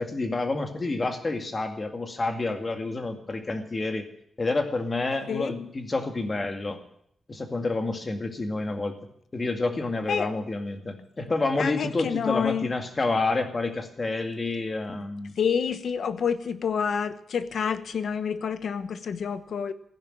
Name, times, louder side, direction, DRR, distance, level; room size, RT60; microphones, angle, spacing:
voice 1, 0.0-4.1 4.4-6.8 7.3-9.0 9.3-15.3, left 3 dB, 25° left, 6 dB, 2.0 m, -29 dB
voice 2, 11.6-12.7 15.4-19.7, left 7 dB, 60° left, 13 dB, 1.1 m, -28 dB
15.0 x 10.5 x 8.9 m, 0.68 s
wide cardioid pair, 155°, 0 cm